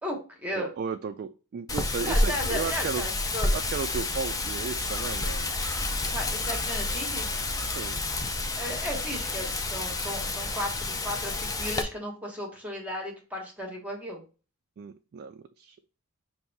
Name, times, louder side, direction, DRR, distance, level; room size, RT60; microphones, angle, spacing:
voice 1, 0.0-0.7 2.0-3.6 6.0-7.3 8.6-14.2, equal, 5° right, 0 dB, 1.1 m, -35 dB
voice 2, 0.5-3.0 3.5-5.5 7.6-8.0 14.8-15.8, right 6 dB, 45° right, 7 dB, 0.3 m, -35 dB
Wind, 1.7-11.8, left 2 dB, 15° left, 0.4 m, -30 dB
sound 1, 2.4-7.9, right 1 dB, 65° left, 0.8 m, -42 dB
5.5 x 2.6 x 3.3 m, 0.35 s
head